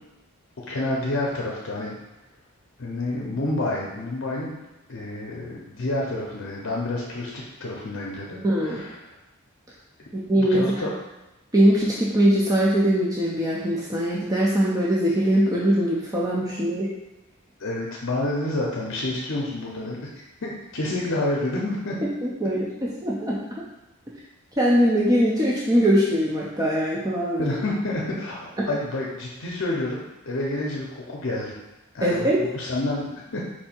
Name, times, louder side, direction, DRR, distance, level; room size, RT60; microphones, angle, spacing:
voice 1, 0.6-2.0 2.8-4.6 4.9-9.1 10.0-10.1 10.4-10.9 17.6-22.0 27.4-31.6 31.9-33.4, left 2 dB, 60° left, -3 dB, 0.7 m, -29 dB
voice 2, 8.4-8.8 10.1-10.9 11.5-16.9 22.2-22.6 23.0-23.6 24.6-27.6 28.6-28.7 32.0-32.5, equal, 15° right, -5 dB, 0.5 m, -21 dB
4.4 x 2.7 x 4.4 m, 1.0 s
head